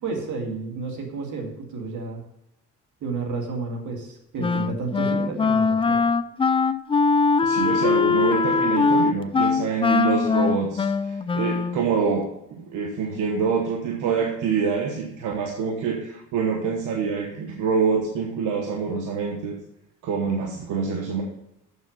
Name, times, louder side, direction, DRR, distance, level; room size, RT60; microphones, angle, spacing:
voice 1, 0.0-2.2 3.0-6.0, right 4 dB, 75° right, 2 dB, 2.3 m, -31 dB
Wind instrument woodwind instrument, 4.4-11.9, left 4 dB, 20° left, 0.4 m, -21 dB
voice 2, 7.4-19.6 20.0-21.2, right 5 dB, 90° right, 1 dB, 1.2 m, -26 dB
7.1 x 6.5 x 5.2 m, 0.84 s
cardioid pair, 90°, 30 cm